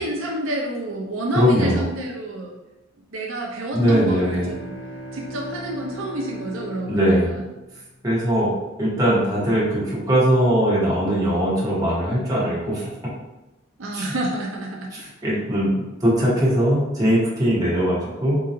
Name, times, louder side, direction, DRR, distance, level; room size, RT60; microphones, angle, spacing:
voice 1, 0.0-2.6 3.1-4.8 5.1-7.2 13.8-14.9, right 1 dB, 80° right, -1 dB, 0.6 m, -29 dB
voice 2, 1.3-1.9 3.7-4.5 6.9-7.3 8.0-8.5 8.8-12.9 13.9-14.1 14.9-18.4, equal, 20° right, -7 dB, 1.1 m, -20 dB
sound 1, 3.9-7.9, right 1 dB, 75° left, 1.1 m, -38 dB
3.8 x 2.8 x 2.6 m, 1.0 s
head